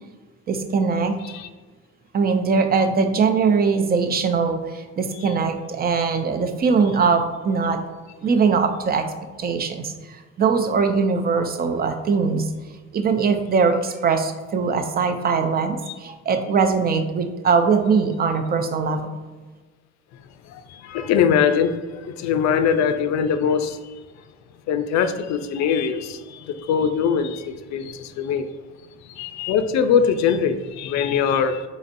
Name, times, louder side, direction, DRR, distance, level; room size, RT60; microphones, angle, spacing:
voice 1, 0.5-1.2 2.1-7.8 8.2-9.1 9.4-12.5 12.9-19.1, right 5 dB, 30° right, 0.5 m, -21 dB
voice 2, 20.5-24.0 24.7-28.5 29.0-31.7, left 7 dB, 65° left, 0.5 m, -22 dB
5.1 x 4.0 x 2.6 m
cardioid pair, 110°, 30 cm